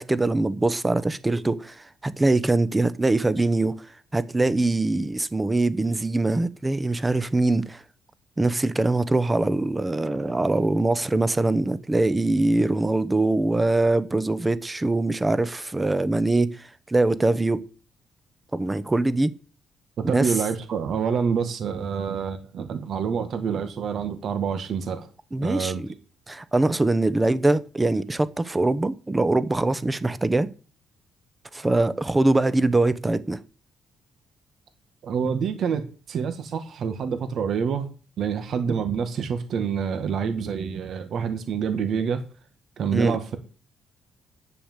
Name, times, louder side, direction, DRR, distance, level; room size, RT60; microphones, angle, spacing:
voice 1, 0.0-3.7 4.1-7.8 8.4-17.6 18.5-19.3 20.0-20.3 25.3-25.9 26.3-30.5 31.5-33.4 42.9-43.2, right 2 dB, 15° right, 1.0 m, -23 dB
voice 2, 20.1-25.1 25.4-25.8 35.0-37.9 38.2-42.2 42.8-43.4, right 6 dB, 65° right, 1.8 m, -27 dB
10.0 x 6.9 x 7.4 m
cardioid pair, 90°, 0 cm